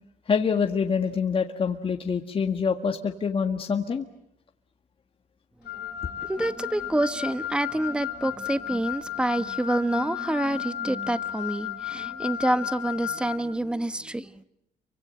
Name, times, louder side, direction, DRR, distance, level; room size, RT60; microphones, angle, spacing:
voice 1, 0.3-4.0, left 6 dB, 30° left, 1.7 m, -26 dB
Wind instrument woodwind instrument, 5.6-13.4, left 11 dB, 75° left, 2.7 m, -34 dB
voice 2, 5.8-14.4, right 1 dB, 5° right, 1.2 m, -27 dB
29.0 x 24.5 x 7.8 m
cardioid pair, 110°, 17 cm